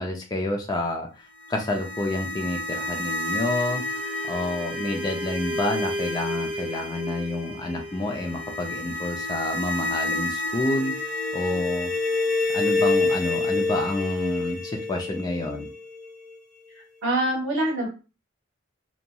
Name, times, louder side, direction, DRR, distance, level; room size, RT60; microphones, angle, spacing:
voice 1, 0.0-10.9 11.3-11.9 12.5-15.7, left 2 dB, 20° left, 1 dB, 0.3 m, -29 dB
sound 1, 1.4-16.3, left 2 dB, 5° left, 1.0 m, -29 dB
voice 2, 16.7-17.9, right 1 dB, 85° right, -5 dB, 1.2 m, -25 dB
2.9 x 2.6 x 2.2 m, 0.32 s
head